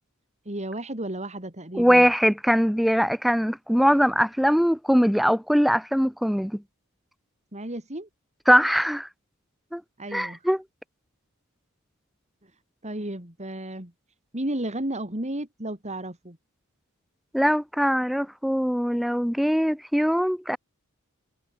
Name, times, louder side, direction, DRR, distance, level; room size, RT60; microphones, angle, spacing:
voice 1, 0.4-2.1 7.5-8.1 10.0-10.4 12.4-12.5 12.8-13.9 14.3-16.4, right 1 dB, 30° right, 4.8 m, -33 dB
voice 2, 1.7-6.6 8.5-9.1 9.7-9.8 10.1-10.6 17.3-20.6, equal, ahead, 1.4 m, -21 dB
head